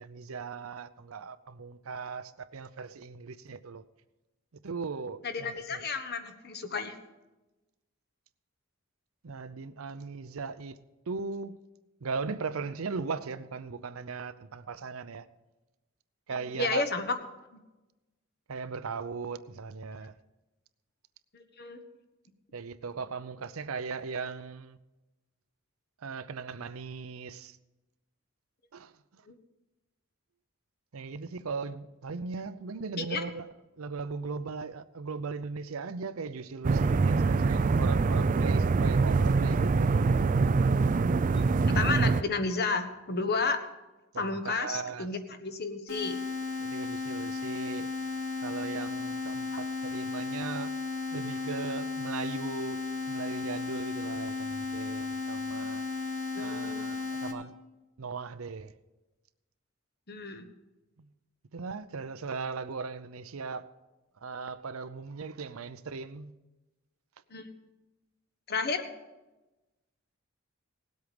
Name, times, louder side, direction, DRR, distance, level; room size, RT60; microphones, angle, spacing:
voice 1, 0.0-3.8 4.6-5.8 9.2-10.8 11.1-11.6 12.0-15.3 16.3-16.9 18.5-20.1 22.5-24.8 26.0-27.6 28.7-28.9 30.9-33.5 33.8-39.9 44.1-45.1 46.6-47.9 48.4-50.7 51.1-55.8 56.4-57.5 58.0-58.7 61.5-63.7 64.2-66.3, right 4 dB, 80° right, 0.6 m, -38 dB
voice 2, 5.2-7.0 16.3-17.1 17.5-17.6 21.3-21.8 29.3-29.4 33.0-33.2 41.3-43.6 44.2-46.2 56.3-56.9 60.1-60.5 67.3-67.5 68.5-68.9, left 4 dB, 50° left, 1.2 m, -32 dB
sound 1, 36.6-42.2, right 4 dB, 40° right, 0.4 m, -24 dB
sound 2, 45.9-57.3, left 4 dB, 75° left, 2.3 m, -34 dB
18.5 x 8.1 x 5.2 m
head